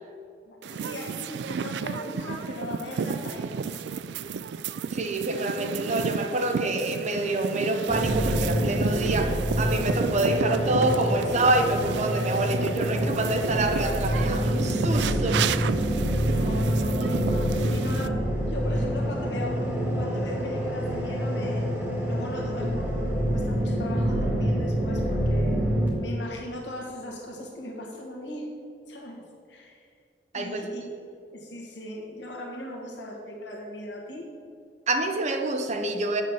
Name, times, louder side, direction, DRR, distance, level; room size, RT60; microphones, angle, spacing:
voice 1, 0.5-3.8 16.1-21.7 22.0-25.6 26.0-28.5 28.9-29.9 30.3-30.8 31.3-34.3, left 1 dB, 80° left, -1 dB, 1.3 m, -38 dB
sound 1, 0.6-18.1, right 6 dB, 70° right, 0.3 m, -33 dB
voice 2, 4.9-15.4 30.3-30.7 34.9-36.2, right 2 dB, 40° right, 5 dB, 0.8 m, -27 dB
kaivo airplane, 7.9-25.9, equal, 10° right, 1.8 m, -26 dB
7.9 x 5.3 x 6.9 m, 2.5 s
head